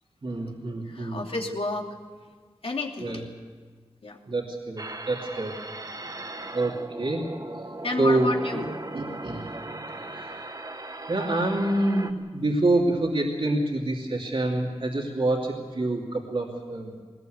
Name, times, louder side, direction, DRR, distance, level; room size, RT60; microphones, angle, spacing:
voice 1, 0.2-1.2 3.0-3.2 4.3-5.5 6.5-7.3 8.0-8.7 8.9-9.5 10.1-10.4 11.1-16.9, right 2 dB, 60° right, -1 dB, 3.0 m, -27 dB
voice 2, 0.9-1.9 2.6-3.3 4.0-4.2 7.8-8.7, left 2 dB, 70° left, 1 dB, 2.8 m, -31 dB
sound 1, 4.8-12.1, right 2 dB, 40° right, 1.3 m, -38 dB
21.0 x 19.5 x 8.1 m, 1.5 s
wide cardioid pair, 55°, 10 cm